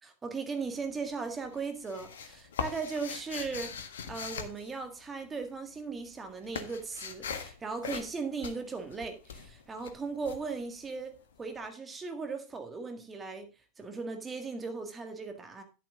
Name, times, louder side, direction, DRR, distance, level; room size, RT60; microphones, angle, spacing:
voice 1, 0.2-3.8 4.1-13.5 13.8-15.6, right 4 dB, 15° right, 1.8 m, -37 dB
sound 1, 0.6-1.1 1.4-5.5 5.8-11.3, left 7 dB, 60° left, 1.3 m, -41 dB
11.5 x 7.6 x 3.7 m
figure-of-eight pair, 90°, 0 cm